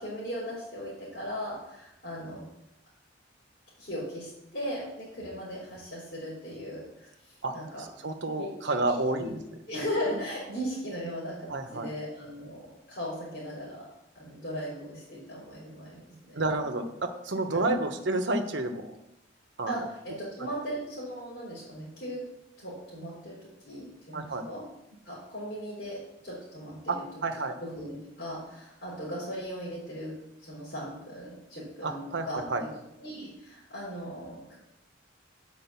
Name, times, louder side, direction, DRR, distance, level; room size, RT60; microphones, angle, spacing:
voice 1, 0.0-2.4 3.8-7.8 8.4-9.4 9.7-13.9 14.1-16.4 17.5-17.6 19.7-22.2 22.6-24.6 25.0-26.9 27.6-30.2 30.5-32.7 33.0-34.6, equal, 55° left, -9 dB, 3.8 m, -38 dB
voice 2, 7.4-9.3 10.1-10.2 11.5-11.9 16.3-16.9 17.2-18.9 19.6-19.7 24.1-24.4 26.9-27.5 31.8-32.6, right 2 dB, 70° right, 6 dB, 1.0 m, -30 dB
9.2 x 5.1 x 6.9 m, 0.87 s
head